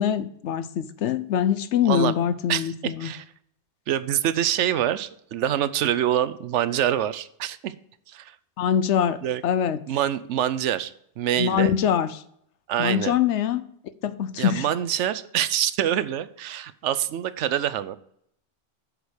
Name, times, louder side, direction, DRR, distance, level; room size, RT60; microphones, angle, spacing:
voice 1, 0.0-3.1 8.6-9.8 11.4-12.2 12.8-13.6 14.0-14.7, left 9 dB, 75° left, 13 dB, 0.9 m, -24 dB
voice 2, 1.8-2.1 2.5-3.2 3.9-7.7 8.1-8.4 9.2-9.4 9.9-11.8 12.7-13.2 14.4-18.0, right 11 dB, 75° right, 15 dB, 0.9 m, -25 dB
8.0 x 5.0 x 6.4 m, 0.69 s
omnidirectional pair, 1.2 m